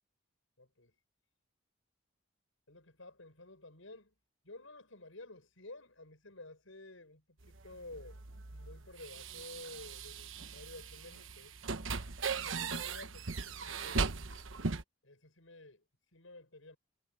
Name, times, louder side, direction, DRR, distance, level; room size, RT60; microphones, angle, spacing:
voice 1, 0.6-0.9 2.7-4.1 4.4-8.2 8.5-11.6 12.5-14.2 15.0-15.8 16.1-16.8, left 2 dB, 75° left, 6.9 m, -52 dB
sound 1, 7.4-14.8, right 4 dB, 70° right, 1.1 m, -39 dB
head